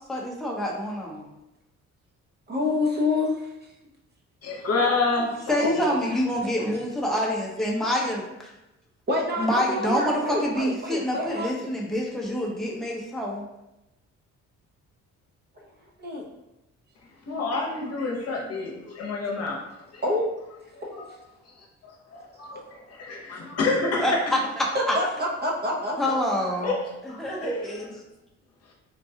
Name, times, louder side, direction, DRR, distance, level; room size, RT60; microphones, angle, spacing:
voice 1, 0.1-1.3 5.5-8.5 9.4-13.5 24.0-25.0 26.0-26.8 27.0-27.9, equal, ahead, -3 dB, 0.7 m, -27 dB
voice 2, 2.5-3.4 5.6-6.2 6.6-6.7 7.9-8.0 9.1-11.7 15.6-15.7 16.0-16.2 20.0-20.3 20.8-21.0 24.7-26.1, left 2 dB, 35° right, -1 dB, 0.7 m, -27 dB
voice 3, 4.4-5.9 17.3-19.6 19.9-20.0 20.9-21.1 21.5-21.6 21.8-24.1 26.6-26.8 27.1-27.7, left 3 dB, 55° left, -1 dB, 0.9 m, -28 dB
3.7 x 2.2 x 2.7 m, 0.93 s
cardioid pair, 90°, 30 cm